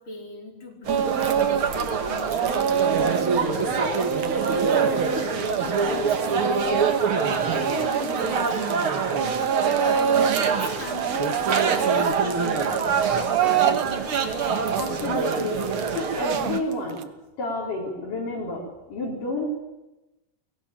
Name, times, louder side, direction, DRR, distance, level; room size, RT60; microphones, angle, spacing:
voice 1, 0.0-12.8, left 4 dB, 30° left, 0 dB, 5.3 m, -39 dB
sound 1, 0.9-16.6, right 5 dB, 45° right, 1.9 m, -25 dB
Speech / Crying sobbing, 0.9-1.9 2.2-8.8 9.1-10.5 10.8-17.0, right 8 dB, 65° right, 1.7 m, -26 dB
voice 2, 14.8-15.6 15.9-17.0 17.4-19.6, left 2 dB, 55° left, -5 dB, 5.9 m, -30 dB
24.0 x 17.5 x 8.9 m, 1.0 s
omnidirectional pair, 4.5 m